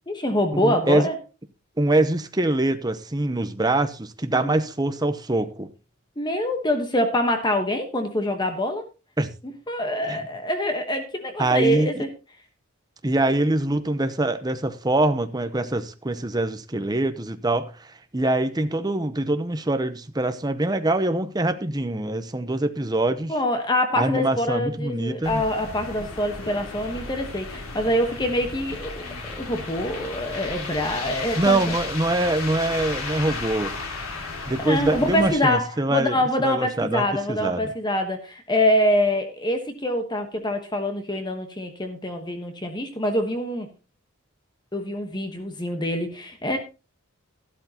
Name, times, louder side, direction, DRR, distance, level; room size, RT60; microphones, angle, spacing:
voice 1, 0.1-1.1 4.3-4.6 6.2-8.8 9.4-12.1 23.3-29.1 29.4-31.6 34.6-43.7 44.7-46.6, left 1 dB, 20° left, 1.2 m, -25 dB
voice 2, 0.6-1.1 1.8-5.7 9.2-9.3 10.1-10.2 11.4-12.0 13.0-23.3 24.0-25.4 31.4-33.7 34.5-37.7, right 2 dB, 20° right, 0.8 m, -24 dB
sound 1, 25.2-35.3, left 3 dB, 85° left, 2.8 m, -34 dB
13.0 x 12.0 x 2.9 m
head